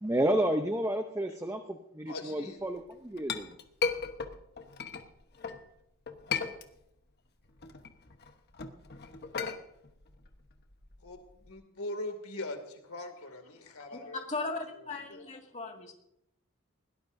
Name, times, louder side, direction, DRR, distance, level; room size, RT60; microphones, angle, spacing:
voice 1, 0.0-3.6, right 1 dB, 15° right, 6 dB, 0.7 m, -31 dB
voice 2, 2.1-2.6 11.0-11.2 11.5-14.5 14.9-15.2, left 2 dB, 85° left, 5 dB, 2.5 m, -41 dB
Chink clink, 2.8-5.6 6.1-7.1 7.4-11.5, left 5 dB, 50° left, 1.2 m, -37 dB
voice 3, 13.6-15.9, left 3 dB, 35° left, 2 dB, 2.1 m, -38 dB
21.0 x 17.5 x 2.7 m, 0.80 s
head